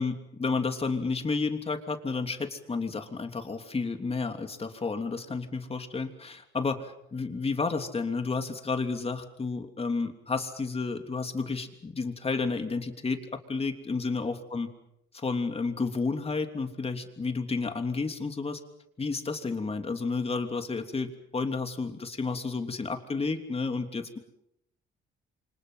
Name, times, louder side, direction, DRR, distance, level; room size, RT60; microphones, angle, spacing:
voice 1, 0.0-14.7 15.1-18.6 19.0-24.2, left 4 dB, 30° left, 6 dB, 3.2 m, -31 dB
29.0 x 25.5 x 5.8 m, 0.77 s
cardioid pair, 90°, 20 cm